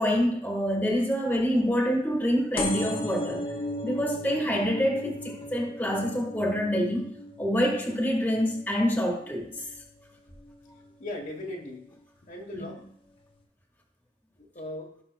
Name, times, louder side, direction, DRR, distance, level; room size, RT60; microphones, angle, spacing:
voice 1, 0.0-3.4 3.8-7.1 7.4-9.5 12.5-12.7, equal, 10° left, 0 dB, 1.5 m, -26 dB
sound 1, 2.6-9.8 10.3-10.7 11.6-11.7 11.9-12.0 12.2-12.3, left 1 dB, 30° left, 0.9 m, -36 dB
voice 2, 11.0-11.9 12.3-12.8 14.4-14.9, left 1 dB, 45° left, 0 dB, 1.3 m, -38 dB
17.0 x 5.7 x 2.3 m, 0.69 s
head